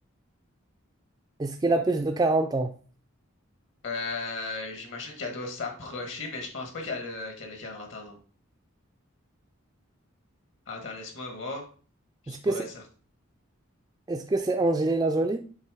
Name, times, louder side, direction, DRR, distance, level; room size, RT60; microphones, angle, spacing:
voice 1, 1.4-2.7 12.3-12.7 14.1-15.4, right 2 dB, 20° right, 0.3 m, -25 dB
voice 2, 3.8-8.2 10.7-11.7 12.2-12.8, left 3 dB, 65° left, 1.4 m, -36 dB
7.4 x 3.4 x 4.8 m
head